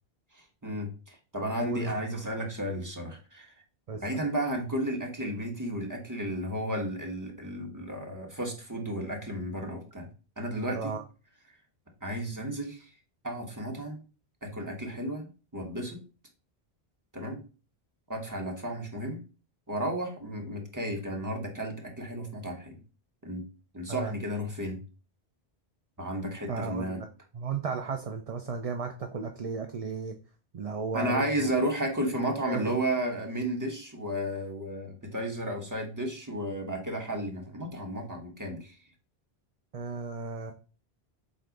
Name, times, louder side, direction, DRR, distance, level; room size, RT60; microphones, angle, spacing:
voice 1, 0.6-3.5 4.0-10.1 10.4-10.9 12.0-12.9 13.2-14.0 14.4-16.0 17.1-17.4 18.1-19.2 19.7-22.8 23.2-23.4 23.7-24.8 26.0-27.0 30.9-38.7, right 1 dB, 20° right, 0 dB, 1.5 m, -33 dB
voice 2, 1.6-2.0 3.9-4.0 10.7-11.0 23.9-24.1 26.5-27.1 27.3-30.1 30.5-31.5 32.5-32.8 39.7-40.5, right 5 dB, 40° right, 5 dB, 0.6 m, -34 dB
7.8 x 2.6 x 5.2 m, 0.35 s
omnidirectional pair, 1.1 m